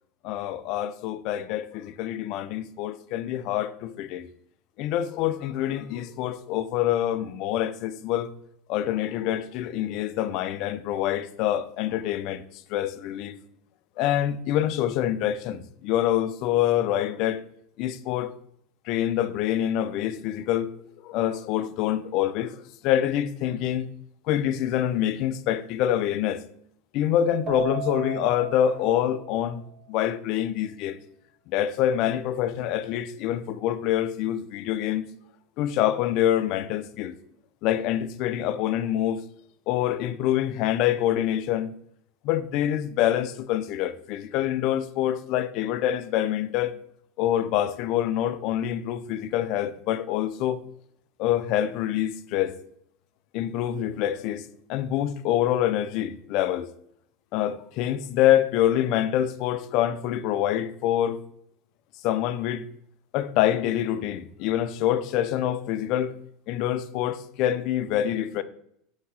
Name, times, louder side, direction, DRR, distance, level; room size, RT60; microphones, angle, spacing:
voice 1, 0.2-4.3 4.8-8.3 8.7-13.4 14.0-17.4 17.8-18.3 18.9-20.7 21.0-23.9 24.3-26.4 26.9-31.0 31.5-35.1 35.6-37.2 37.6-39.2 39.7-41.7 42.2-46.8 47.2-50.6 51.2-52.6 53.3-56.7 57.3-61.2 62.0-62.7 63.1-66.1 66.5-68.4, left 11 dB, 55° left, 0.3 m, -26 dB
Keyboard (musical), 27.5-29.9, right 10 dB, 35° right, 0.4 m, -36 dB
4.0 x 2.8 x 3.7 m
supercardioid pair, 120°, 0 cm